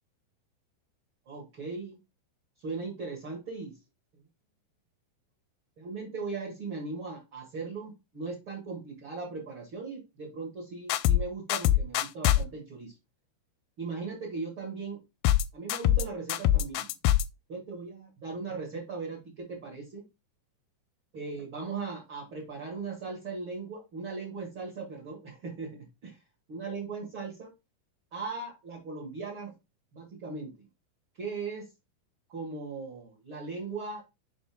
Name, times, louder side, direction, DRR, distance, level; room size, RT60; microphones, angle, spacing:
voice 1, 1.2-2.0 2.6-3.8 5.8-12.9 13.8-15.0 15.5-16.9 17.5-20.0 21.1-26.2 26.5-27.5 28.1-29.5 29.9-30.7 31.2-31.7 32.3-34.0, right 4 dB, 45° right, -3 dB, 1.8 m, -38 dB
sound 1, 10.9-11.2 11.5-12.4 15.2-15.4 15.7-16.0 16.3-17.2, left 12 dB, 85° left, 2.4 m, -23 dB
5.8 x 5.2 x 3.5 m, 0.25 s
omnidirectional pair, 4.9 m